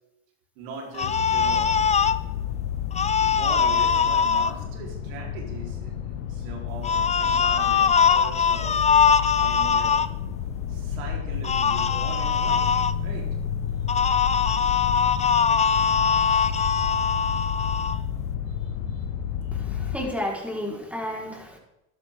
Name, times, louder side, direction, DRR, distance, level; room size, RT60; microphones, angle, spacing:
voice 1, 0.6-2.0 3.2-8.8 9.4-10.0 10.7-12.7 13.0-13.3 18.5-19.1 19.4-19.9, right 3 dB, 70° right, 0 dB, 4.2 m, -40 dB
sound 1, 0.9-2.2 2.9-4.5 6.8-10.1 11.4-12.9 13.9-18.0, left 6 dB, 15° left, 0.5 m, -22 dB
sound 2, 1.0-20.0, left 9 dB, 70° left, 1.4 m, -31 dB
voice 2, 19.5-21.6, left 1 dB, 5° right, -2 dB, 4.5 m, -32 dB
13.0 x 12.0 x 3.8 m, 0.90 s
hypercardioid pair, 75°, 41 cm